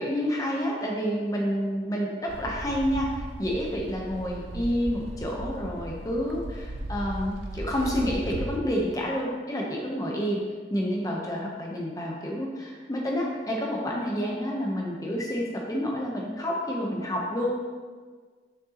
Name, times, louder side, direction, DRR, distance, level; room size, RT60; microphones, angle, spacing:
voice 1, 0.0-3.1 3.4-10.4 10.7-17.5, equal, 20° left, -2 dB, 0.8 m, -29 dB
sound 1, 2.3-8.6, right 1 dB, 85° right, 0.6 m, -37 dB
6.5 x 6.5 x 2.9 m, 1.5 s
head